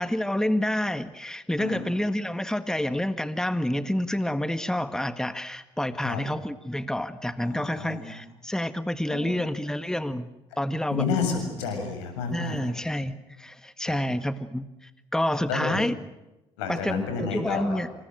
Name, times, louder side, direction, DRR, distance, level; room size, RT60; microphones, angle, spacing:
voice 1, 0.0-10.3 10.6-11.1 12.3-15.9 16.7-17.9, left 1 dB, 5° left, 10 dB, 1.8 m, -28 dB
voice 2, 7.4-8.1 9.1-9.3 10.9-12.7 13.9-14.0 15.5-15.8 16.6-17.8, left 5 dB, 80° left, 5 dB, 7.3 m, -30 dB
28.5 x 26.0 x 6.5 m, 0.97 s
hypercardioid pair, 55°, 15 cm